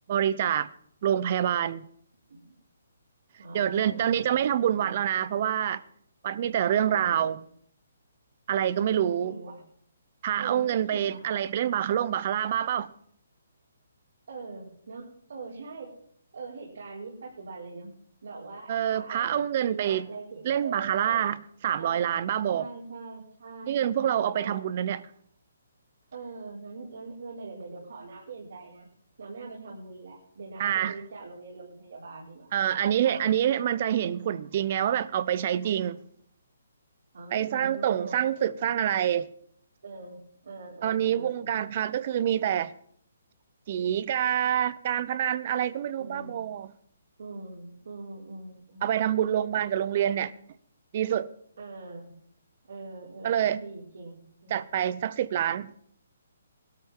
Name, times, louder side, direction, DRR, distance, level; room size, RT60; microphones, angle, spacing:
voice 1, 0.1-0.7 1.0-1.9 3.5-5.8 6.2-7.4 8.5-9.3 10.2-12.9 18.7-20.1 20.4-21.4 21.6-22.7 23.7-25.0 30.6-31.0 32.5-36.0 37.3-39.3 40.8-42.7 43.7-46.7 48.8-50.3 50.9-51.3 53.2-53.6 54.5-55.7, right 10 dB, 35° right, 0.7 m, -26 dB
voice 2, 3.4-4.3 4.8-4.9 6.8-7.4 8.7-9.6 10.4-11.3 14.3-15.9 16.3-17.9 18.2-21.2 21.8-22.1 22.5-24.6 26.1-28.9 29.2-33.4 37.1-38.7 39.8-41.6 46.0-46.5 47.2-49.0 49.9-50.4 51.6-52.1 52.7-54.6, right 3 dB, 70° right, 5.2 m, -42 dB
19.5 x 13.0 x 3.8 m
hypercardioid pair, 165°, 0 cm